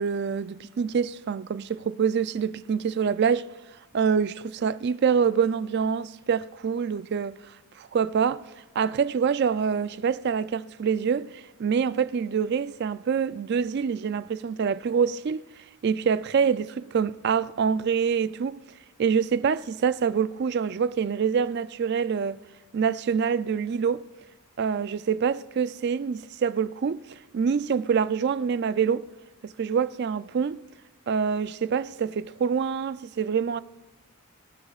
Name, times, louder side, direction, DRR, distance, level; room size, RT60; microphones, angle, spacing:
voice 1, 0.0-3.5 3.9-7.4 7.8-8.5 8.8-15.4 15.8-18.6 19.0-22.4 22.7-24.1 24.6-29.1 29.4-30.6 31.1-33.6, right 6 dB, 50° right, 0.3 m, -26 dB
18.0 x 16.5 x 2.4 m
head